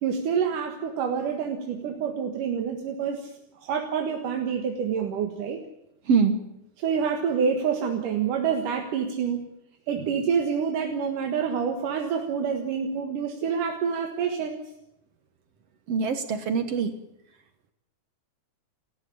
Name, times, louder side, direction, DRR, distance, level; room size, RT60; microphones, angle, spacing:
voice 1, 0.0-3.3 3.6-5.6 6.8-9.5 9.9-14.6, right 6 dB, 85° right, 3 dB, 3.3 m, -27 dB
voice 2, 6.1-6.4 15.9-16.9, right 5 dB, 60° right, 9 dB, 2.2 m, -23 dB
29.0 x 14.5 x 8.7 m, 0.83 s
omnidirectional pair, 3.6 m